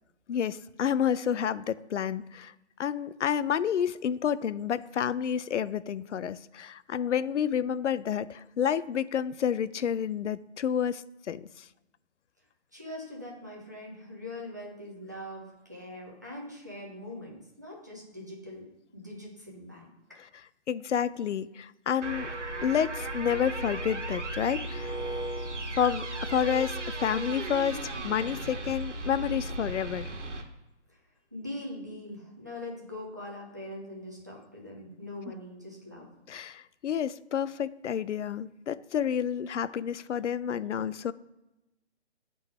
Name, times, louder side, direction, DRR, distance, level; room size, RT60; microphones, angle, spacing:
voice 1, 0.3-2.5 2.8-11.6 20.7-22.3 22.6-25.0 25.8-30.1 36.3-41.1, left 8 dB, 85° left, 16 dB, 0.5 m, -29 dB
voice 2, 12.7-19.8 31.3-36.1, left 1 dB, 15° right, -3 dB, 0.7 m, -42 dB
sound 1, 22.0-30.4, right 2 dB, 90° right, 1.5 m, -35 dB
8.1 x 3.8 x 4.7 m, 0.96 s
hypercardioid pair, 180°, 35 cm